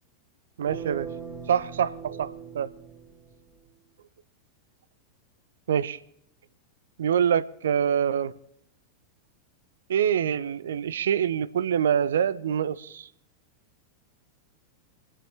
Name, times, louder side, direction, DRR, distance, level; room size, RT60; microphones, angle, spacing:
voice 1, 0.6-1.1 1.5-2.7 5.7-6.0 7.0-8.3 9.9-13.1, right 8 dB, 65° right, 0.5 m, -25 dB
sound 1, 0.7-3.6, right 7 dB, 20° right, 5.6 m, -40 dB
26.0 x 9.8 x 3.3 m
figure-of-eight pair, 90°, 0 cm